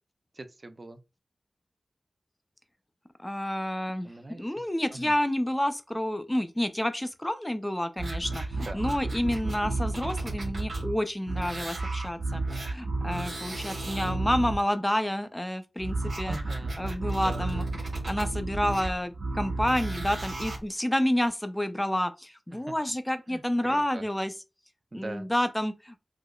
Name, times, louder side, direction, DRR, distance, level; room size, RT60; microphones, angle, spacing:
voice 1, 0.3-1.0 4.0-4.4 4.9-5.2 8.5-8.8 16.3-16.8 17.2-17.4 22.5-22.7 23.3-24.0 24.9-25.3, right 2 dB, 45° right, 0.4 m, -41 dB
voice 2, 3.2-4.1 4.4-16.4 16.8-17.6 18.0-24.3 24.9-25.9, left 1 dB, 10° left, 0.4 m, -29 dB
sound 1, 8.0-11.0 11.2-14.5 15.8-20.6 21.3-21.4, right 2 dB, 75° right, 1.4 m, -32 dB
4.7 x 2.0 x 2.3 m
wide cardioid pair, 60°, 0 cm